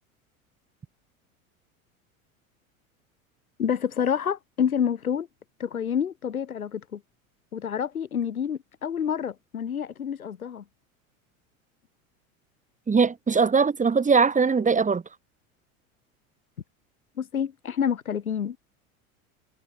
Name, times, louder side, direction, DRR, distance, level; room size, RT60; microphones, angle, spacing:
voice 1, 3.6-5.3 5.6-7.0 7.5-10.6 17.2-18.6, left 8 dB, 85° left, 7.3 m, -28 dB
voice 2, 12.9-15.0, right 5 dB, 20° right, 2.5 m, -21 dB
hypercardioid pair, 85°, 42 cm